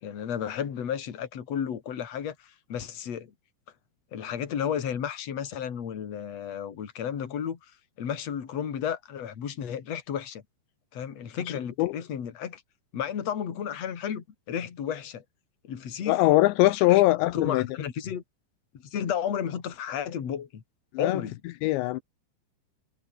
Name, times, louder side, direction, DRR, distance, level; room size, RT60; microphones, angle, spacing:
voice 1, 0.0-3.3 4.1-7.6 8.0-10.4 10.9-12.6 12.9-15.2 15.6-16.3 16.9-18.2 18.8-20.6 21.0-21.4, left 8 dB, 40° left, 3.3 m, -33 dB
voice 2, 16.1-17.7 20.9-21.2 21.6-22.0, left 18 dB, 85° left, 3.0 m, -21 dB
omnidirectional pair, 5.1 m